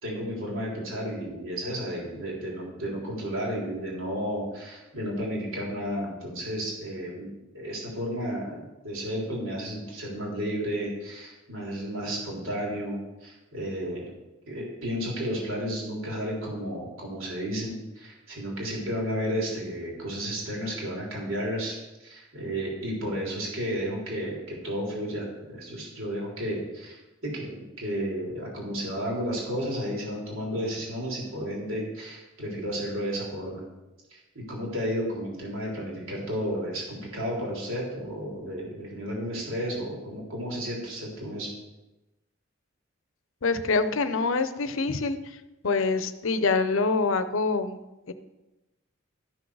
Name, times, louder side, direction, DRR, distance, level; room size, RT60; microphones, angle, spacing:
voice 1, 0.0-7.3 7.5-14.0 14.5-21.7 22.0-27.0 27.2-33.6 34.1-41.5, equal, 75° right, -3 dB, 3.4 m, -32 dB
voice 2, 43.4-45.2 45.6-47.8 48.1-48.2, left 4 dB, 70° left, 11 dB, 0.7 m, -25 dB
13.5 x 6.3 x 4.8 m, 1.0 s
head